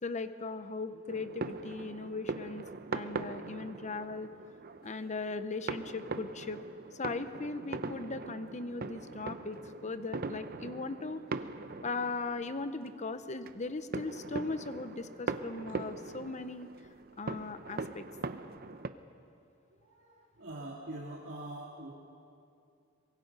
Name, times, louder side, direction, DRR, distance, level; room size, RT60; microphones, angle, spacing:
voice 1, 0.0-4.3 4.8-6.6 6.9-11.2 11.8-16.7 17.2-18.0, left 3 dB, 35° left, 11 dB, 0.9 m, -38 dB
sound 1, 1.1-18.9, right 3 dB, 50° right, 0.8 m, -41 dB
voice 2, 19.7-21.9, right 1 dB, 65° right, -4 dB, 2.5 m, -44 dB
24.0 x 22.0 x 5.5 m, 2.5 s
head